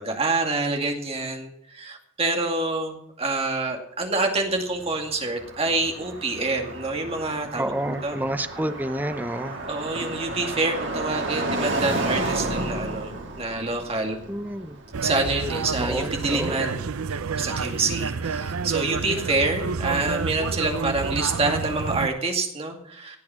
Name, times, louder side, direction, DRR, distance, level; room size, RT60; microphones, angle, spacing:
voice 1, 0.0-8.2 9.7-14.2 15.0-16.8 17.1-23.2, right 3 dB, 30° right, 2 dB, 2.4 m, -27 dB
Car passing by, 4.5-16.5, right 2 dB, 55° right, 3.3 m, -32 dB
voice 2, 7.6-9.6 14.3-14.8 15.8-16.6, right 1 dB, 10° right, 10 dB, 0.7 m, -29 dB
sound 1, 14.9-22.1, right 5 dB, 85° right, 0.6 m, -29 dB
17.0 x 8.6 x 5.9 m, 0.76 s
head